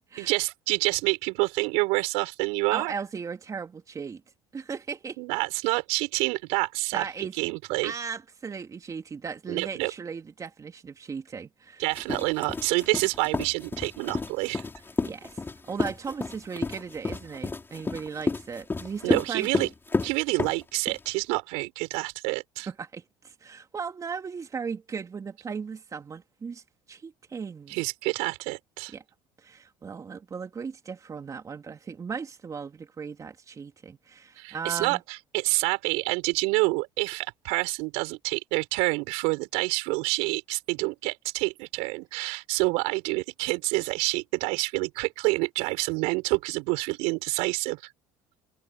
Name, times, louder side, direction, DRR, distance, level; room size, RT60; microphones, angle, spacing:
voice 1, 0.2-2.9 5.2-7.9 9.5-9.9 11.8-14.6 19.0-19.7 20.0-22.7 27.7-28.9 34.4-47.9, right 27 dB, 80° right, 6.5 m, -28 dB
voice 2, 2.7-4.2 4.5-5.2 6.9-7.4 7.8-11.8 15.0-19.5 22.7-26.6 26.9-27.8 28.9-29.0 29.4-35.0, right 5 dB, 30° right, 3.4 m, -37 dB
sound 1, 11.9-21.1, left 3 dB, 20° left, 5.6 m, -31 dB
supercardioid pair, 85°, 11 cm